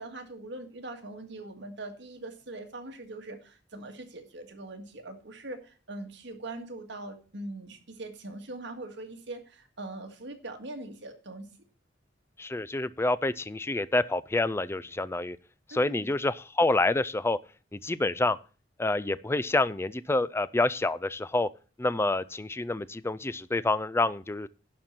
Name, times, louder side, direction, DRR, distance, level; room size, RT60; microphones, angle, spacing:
voice 1, 0.0-11.5 15.7-16.1, right 2 dB, 70° right, 1.8 m, -42 dB
voice 2, 12.4-15.4 15.7-17.4 17.7-18.4 18.8-21.5 21.8-24.5, left 2 dB, 15° left, 0.4 m, -27 dB
11.0 x 4.5 x 7.3 m
head